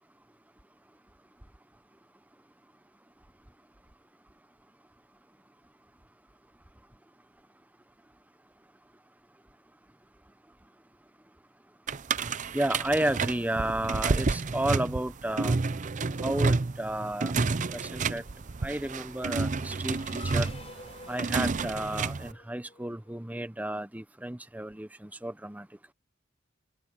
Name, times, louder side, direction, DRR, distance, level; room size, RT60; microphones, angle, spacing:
sound 1, 11.9-22.3, right 4 dB, 40° right, 0.6 m, -30 dB
voice 1, 12.5-15.6 16.2-17.3 17.7-18.2 18.6-20.5 21.1-25.7, right 1 dB, 10° right, 0.8 m, -32 dB
Race car auto racing / Accelerating revving vroom, 17.7-23.3, left 3 dB, 30° left, 5.4 m, -51 dB
open air
head